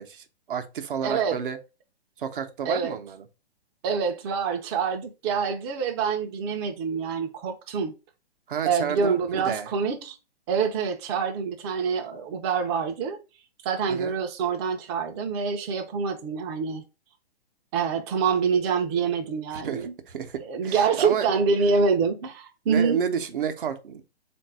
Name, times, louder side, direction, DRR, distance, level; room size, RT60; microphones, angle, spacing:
voice 1, 0.0-1.6 2.2-3.2 8.5-9.7 13.9-14.1 19.5-21.3 22.7-24.0, right 7 dB, 55° right, 0.8 m, -31 dB
voice 2, 1.0-1.4 2.6-3.0 3.8-7.9 8.6-10.2 10.5-13.2 13.6-16.8 17.7-19.9 20.5-23.0, right 5 dB, 25° right, 0.6 m, -26 dB
3.9 x 2.6 x 4.6 m
figure-of-eight pair, 120°, 31 cm